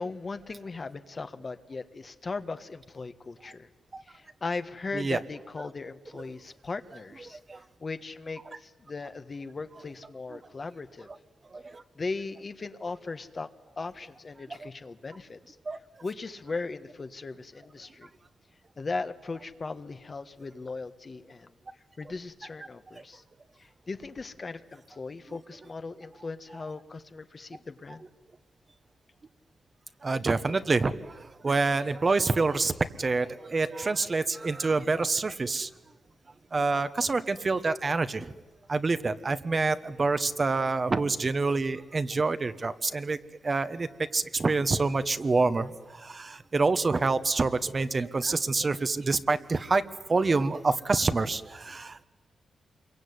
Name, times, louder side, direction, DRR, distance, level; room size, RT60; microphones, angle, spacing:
voice 1, 0.0-3.7 4.0-7.4 7.8-11.1 11.9-13.5 13.8-15.6 16.0-18.1 18.8-21.5 22.0-23.2 23.6-28.0, left 3 dB, 40° left, 10 dB, 1.4 m, -38 dB
voice 2, 11.5-11.8 14.6-14.7 15.7-15.8 30.0-35.7 36.5-38.3 38.7-43.2 43.4-43.9 44.1-49.8 50.1-52.0, right 3 dB, 40° right, 11 dB, 1.3 m, -27 dB
27.0 x 23.0 x 9.7 m, 1.2 s
cardioid pair, 80°, 0 cm